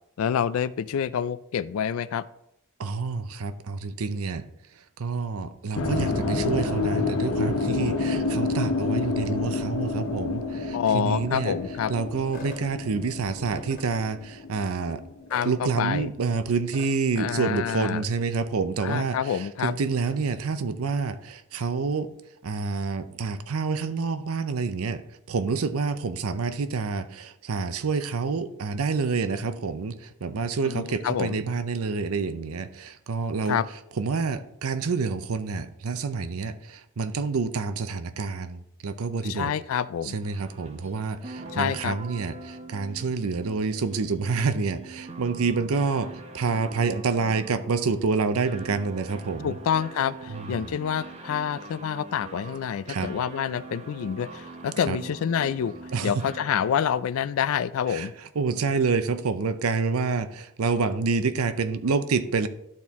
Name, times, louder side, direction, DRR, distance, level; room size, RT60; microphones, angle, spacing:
voice 1, 0.2-2.2 10.7-11.9 15.3-16.1 17.2-18.0 18.8-19.7 30.6-31.4 33.5-33.7 39.3-40.2 41.5-42.0 49.4-55.7 56.0-58.1, left 8 dB, 70° left, 17 dB, 0.3 m, -27 dB
voice 2, 2.8-4.5 4.8-11.6 11.9-15.0 15.4-22.1 22.4-25.0 25.3-33.6 34.0-39.5 40.0-49.6 50.3-50.7 52.8-53.1 54.8-55.0 55.9-56.2 57.9-62.5, right 4 dB, 80° right, 12 dB, 0.6 m, -28 dB
sound 1, 5.7-15.9, left 3 dB, 90° left, 0.9 m, -29 dB
sound 2, 12.3-12.6 13.6-13.9 15.3-15.5 16.7-16.9, left 2 dB, 40° left, 1.6 m, -41 dB
sound 3, 40.2-57.0, right 2 dB, 30° right, 0.8 m, -43 dB
12.0 x 4.3 x 3.5 m, 0.81 s
head